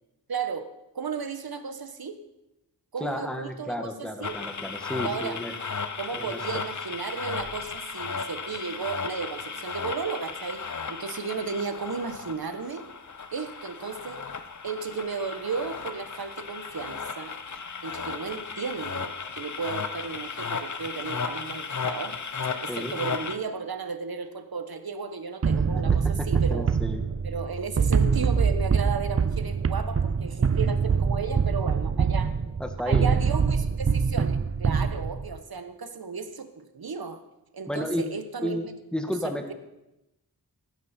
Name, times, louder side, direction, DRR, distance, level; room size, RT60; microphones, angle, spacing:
voice 1, 0.3-0.7 0.9-2.2 2.9-4.4 5.0-5.4 6.0-10.6 10.9-12.8 13.3-14.2 14.6-17.3 17.8-22.2 22.6-26.7 27.2-32.3 32.9-37.2 37.5-38.7 39.2-39.5, right 5 dB, 70° right, 9 dB, 1.3 m, -34 dB
voice 2, 3.0-5.5 6.1-6.4 22.7-22.9 25.5-25.6 26.2-27.0 32.6-33.1 37.7-38.0 38.4-38.7 38.9-39.5, equal, ahead, 5 dB, 1.6 m, -32 dB
sound 1, 4.2-23.4, left 5 dB, 50° left, 0.9 m, -35 dB
sound 2, 25.4-35.4, right 6 dB, 40° right, 0.5 m, -24 dB
16.0 x 12.5 x 4.4 m, 0.93 s
wide cardioid pair, 60°, 38 cm